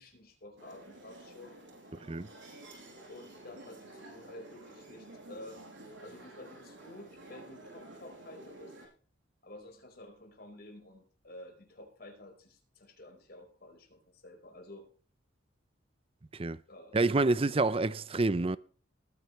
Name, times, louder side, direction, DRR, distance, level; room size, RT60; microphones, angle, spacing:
voice 1, 0.0-1.6 3.1-5.6 6.0-8.7 9.4-14.9 16.7-17.1 17.4-17.8, left 1 dB, 55° left, 4.5 m, -51 dB
sound 1, 0.6-8.9, right 1 dB, 80° right, 6.8 m, -51 dB
voice 2, 2.0-2.3 16.3-16.6 16.9-18.6, right 3 dB, 30° right, 0.5 m, -28 dB
20.0 x 9.6 x 3.2 m
head